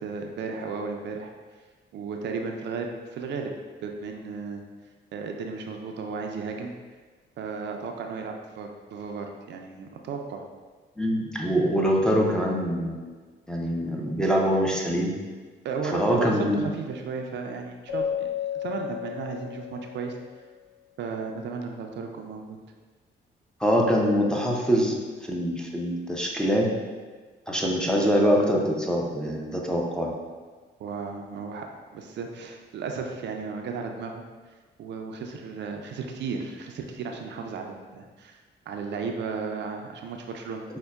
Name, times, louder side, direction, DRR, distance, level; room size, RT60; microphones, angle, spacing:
voice 1, 0.0-1.3 1.9-3.5 3.8-4.6 5.1-6.7 7.4-10.5 15.6-18.3 18.5-20.2 21.0-22.6 30.8-31.7 31.9-34.2 34.8-38.4 38.7-40.6, right 5 dB, 65° right, 3 dB, 0.4 m, -34 dB
voice 2, 11.0-13.0 13.5-15.1 15.9-16.6 23.6-24.9 25.2-26.7 27.5-30.1, equal, 5° left, -2 dB, 0.5 m, -24 dB
Keyboard (musical), 17.9-20.3, left 8 dB, 80° left, 0.9 m, -32 dB
5.2 x 2.1 x 2.3 m, 1.4 s
cardioid pair, 90°, 20 cm